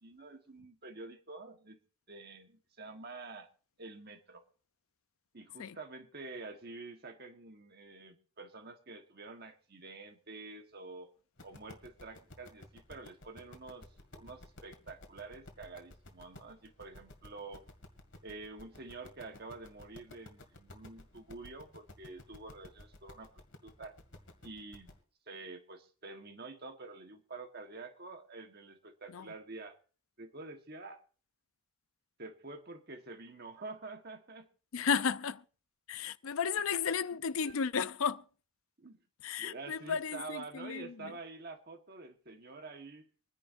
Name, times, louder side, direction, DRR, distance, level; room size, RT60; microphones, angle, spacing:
voice 1, 0.0-1.8 2.1-3.5 3.8-4.4 5.3-11.1 11.4-13.9 14.1-17.7 18.2-23.3 23.6-23.9 24.4-24.9 25.3-29.8 30.2-31.0 32.2-34.5 37.4-37.6 38.8-39.0 39.4-43.1, right 3 dB, 45° right, 1.4 m, -48 dB
sound 1, 11.4-25.0, left 1 dB, 55° left, 2.0 m, -54 dB
voice 2, 34.7-35.4 35.9-38.2 39.2-41.1, left 6 dB, 70° left, 0.5 m, -33 dB
25.5 x 10.5 x 2.6 m
head